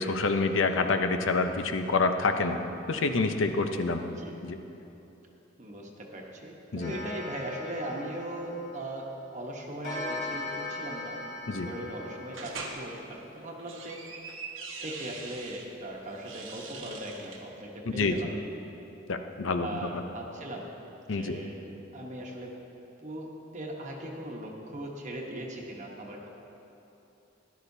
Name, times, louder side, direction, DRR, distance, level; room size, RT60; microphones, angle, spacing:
voice 1, 0.0-2.6 2.9-4.0 4.4-4.6 6.7-7.0 11.5-11.7 17.9-18.2 19.1-20.0 21.1-21.4, left 3 dB, 85° left, 7 dB, 0.7 m, -27 dB
voice 2, 4.0-4.4 5.6-14.0 14.8-18.3 19.6-20.7 21.1-21.6 21.9-22.5 23.0-26.3, right 1 dB, 40° right, -1 dB, 1.0 m, -39 dB
Clock, 6.8-9.1 9.8-13.2, left 2 dB, 45° left, 2.4 m, -39 dB
sound 1, 12.3-12.8 13.4-15.7 16.1-17.4, right 4 dB, 85° right, 1.2 m, -42 dB
14.0 x 11.5 x 2.7 m, 3.0 s
head